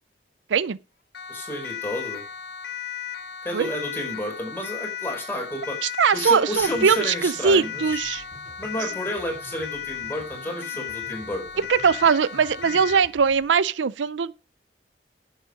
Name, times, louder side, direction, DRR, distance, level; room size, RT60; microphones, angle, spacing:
Siren, 1.1-13.1, left 9 dB, 65° left, 1.2 m, -35 dB
voice 1, 1.3-2.2 3.4-5.8 6.1-8.0 8.6-11.6, equal, 10° left, 4.9 m, -31 dB
voice 2, 5.8-8.2 11.7-14.3, right 6 dB, 85° right, 0.5 m, -21 dB
sound 1, 6.6-13.5, right 1 dB, 50° right, 5.6 m, -48 dB
11.0 x 8.1 x 5.1 m
head